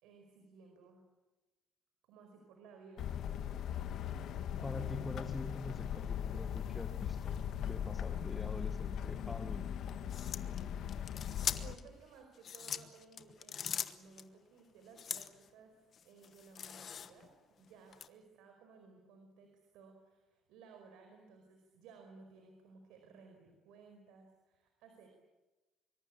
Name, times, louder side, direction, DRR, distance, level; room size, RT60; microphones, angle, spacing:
voice 1, 0.0-1.0 2.1-3.2 11.6-17.3 17.6-25.1, right 5 dB, 90° right, 4 dB, 5.0 m, -58 dB
sound 1, 3.0-11.7, left 9 dB, 50° left, 1.5 m, -39 dB
voice 2, 4.6-9.7, left 2 dB, 10° left, 10 dB, 1.2 m, -45 dB
sound 2, 10.1-11.9 12.4-14.2 15.0-15.5 15.9-17.3 17.9-18.1, left 8 dB, 35° left, 1.2 m, -41 dB
25.0 x 24.5 x 8.6 m, 1.1 s
cardioid pair, 175°, 0 cm